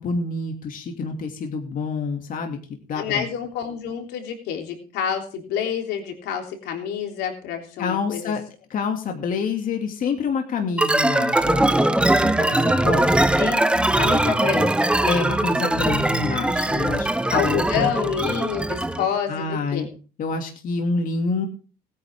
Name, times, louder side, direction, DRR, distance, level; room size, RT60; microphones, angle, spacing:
voice 1, 0.0-2.6 2.9-3.3 7.8-8.4 8.7-13.2 15.0-17.9 19.3-19.9 20.2-21.5, left 4 dB, 55° left, 3 dB, 2.5 m, -27 dB
voice 2, 2.9-8.3 13.4-14.9 17.3-19.9, left 8 dB, 85° left, 3 dB, 3.4 m, -28 dB
sound 1, 10.8-19.1, right 1 dB, 5° right, 0.9 m, -21 dB
20.0 x 9.7 x 3.6 m, 0.36 s
cardioid pair, 110°, 17 cm